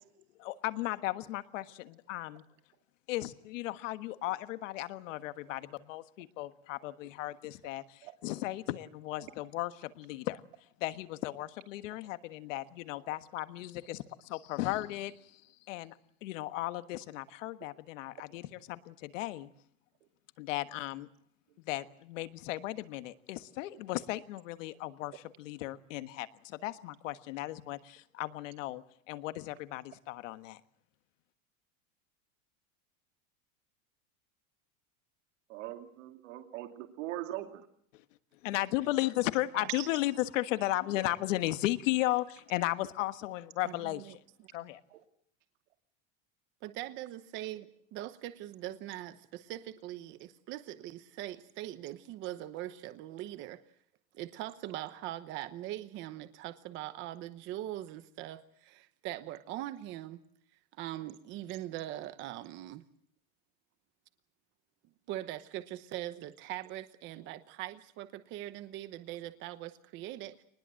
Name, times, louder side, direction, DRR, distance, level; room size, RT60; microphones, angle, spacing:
voice 1, 0.4-2.4 3.1-10.4 10.8-15.4 15.7-19.5 20.4-21.1 21.6-25.1 25.4-30.6 38.4-44.2 44.5-44.8, left 17 dB, 65° left, 11 dB, 1.5 m, -35 dB
voice 2, 35.5-37.6 39.8-39.9 44.9-45.0, right 14 dB, 65° right, 5 dB, 2.7 m, -41 dB
voice 3, 43.6-44.5 46.6-53.6 54.1-60.2 60.7-62.8 65.1-70.4, right 14 dB, 30° right, 12 dB, 1.0 m, -42 dB
25.5 x 20.5 x 7.6 m, 0.63 s
supercardioid pair, 180°, 40 cm